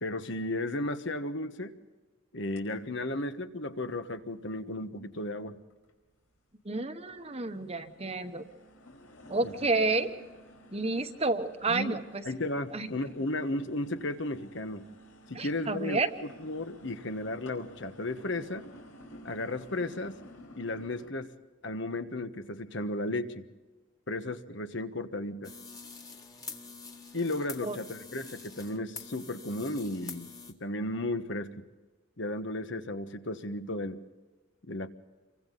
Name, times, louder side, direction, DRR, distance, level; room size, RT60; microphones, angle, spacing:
voice 1, 0.0-1.7 2.3-5.6 9.4-9.5 11.7-12.0 12.2-14.9 15.3-18.6 19.2-20.2 20.5-21.3 21.6-23.4 24.1-25.5 27.1-31.6 32.2-34.0 34.6-34.9, left 1 dB, 60° left, 9 dB, 1.3 m, -34 dB
sound 1, 2.6-2.7 3.2-3.3 3.9-4.0 5.2-5.3 5.7-6.3 6.7-21.1, equal, 90° left, 5.0 m, -53 dB
voice 2, 6.6-8.5 9.3-10.1 10.7-12.2 12.7-12.9 15.3-16.1 27.6-27.8, right 3 dB, 30° right, 8 dB, 1.1 m, -30 dB
sound 2, 25.4-30.5, left 4 dB, 15° left, 1.7 m, -46 dB
28.0 x 24.0 x 4.1 m, 1.3 s
head